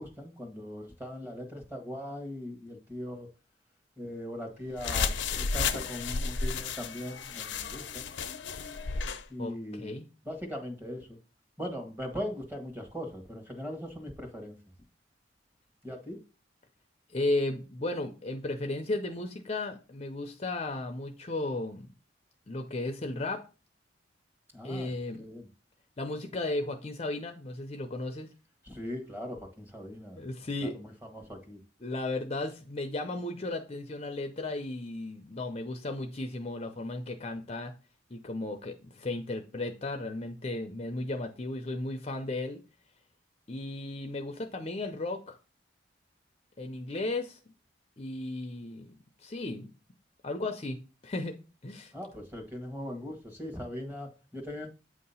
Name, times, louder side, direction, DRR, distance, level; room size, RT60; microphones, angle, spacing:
voice 1, 0.0-3.3 4.0-8.1 9.3-9.9 10.2-11.2 11.6-14.6 15.8-16.2 24.5-24.9 25.2-25.5 28.6-30.2 30.6-31.6 51.9-54.7, equal, 10° right, 1.3 m, -40 dB
sound 1, 4.8-9.2, left 5 dB, 80° left, 0.6 m, -32 dB
voice 2, 9.4-10.0 17.1-21.9 22.5-23.4 24.6-25.3 26.0-28.3 30.2-30.8 31.8-37.7 38.1-42.6 43.5-45.4 46.6-47.4 48.0-48.9 49.2-49.7 50.2-50.8 51.0-51.4 51.6-51.9, left 2 dB, 35° left, 0.6 m, -35 dB
8.3 x 2.8 x 5.5 m
head